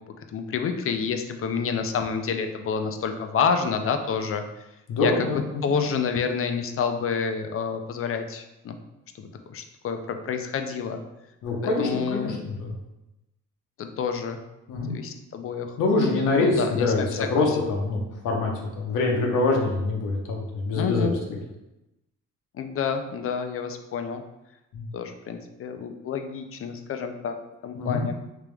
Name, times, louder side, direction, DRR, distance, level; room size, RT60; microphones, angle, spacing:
voice 1, 0.3-4.4 5.0-8.8 9.2-11.0 11.8-12.3 13.8-14.4 14.9-15.7 16.4-17.4 20.7-21.2 22.6-24.2 24.9-27.3 27.6-28.1, left 6 dB, 45° left, 7 dB, 0.5 m, -28 dB
voice 2, 4.9-5.7 11.4-12.7 14.7-15.0 15.8-21.1 24.7-24.9 27.8-28.0, left 3 dB, 85° left, 0 dB, 0.9 m, -25 dB
3.4 x 2.9 x 3.3 m, 0.94 s
cardioid pair, 90°, 30 cm